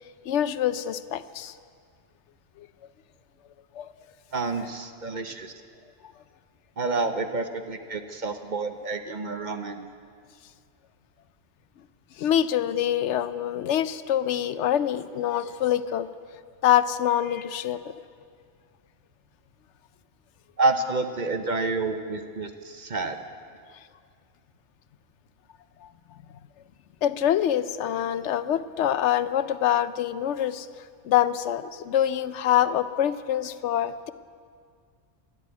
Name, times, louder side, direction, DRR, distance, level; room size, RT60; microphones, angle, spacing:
voice 1, 0.3-1.5 2.6-2.7 3.8-3.9 12.2-16.1 16.6-17.9 27.0-30.7 31.0-34.1, left 11 dB, 85° left, 14 dB, 0.9 m, -25 dB
voice 2, 4.3-5.5 6.8-9.9 20.6-23.2, right 3 dB, 45° right, 7 dB, 0.9 m, -28 dB
13.0 x 11.5 x 9.3 m, 2.1 s
omnidirectional pair, 1.2 m